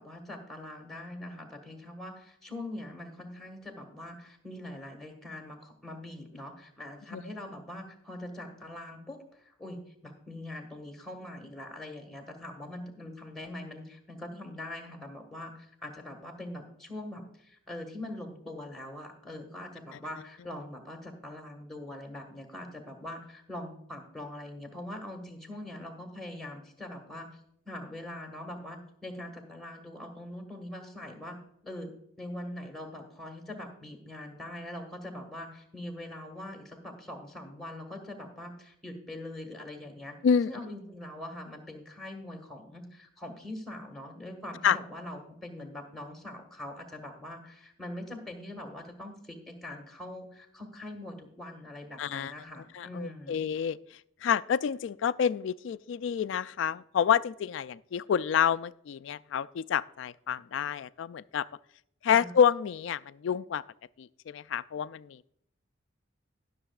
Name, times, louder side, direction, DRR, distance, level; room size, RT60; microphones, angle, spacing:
voice 1, 0.0-9.8 10.0-27.3 27.7-31.4 31.6-31.9 32.2-40.2 40.5-53.4 62.1-62.3, left 1 dB, ahead, 3 dB, 1.6 m, -42 dB
voice 2, 52.0-52.3 52.7-53.8 54.2-61.5 62.0-63.6 64.0-65.3, left 7 dB, 70° left, 17 dB, 0.3 m, -28 dB
20.0 x 6.8 x 2.4 m, 0.72 s
head